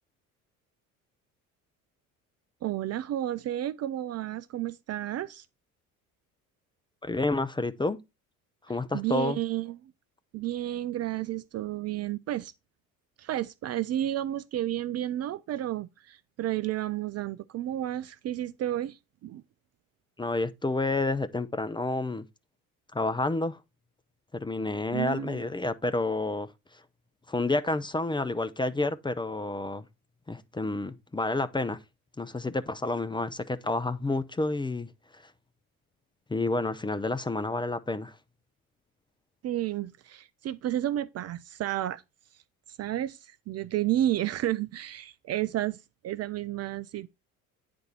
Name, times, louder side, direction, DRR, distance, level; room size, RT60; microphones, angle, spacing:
voice 1, 2.6-5.5 8.9-9.9 10.3-12.5 13.2-19.4 24.9-25.4 39.4-42.0 42.7-47.1, right 13 dB, 35° right, 0.5 m, -31 dB
voice 2, 7.0-8.0 8.7-9.4 20.2-22.2 22.9-23.6 24.3-26.5 27.3-29.9 30.3-31.8 32.2-35.3 36.3-38.2, left 2 dB, 10° left, 0.7 m, -29 dB
9.5 x 4.3 x 4.4 m
figure-of-eight pair, 60°, 43 cm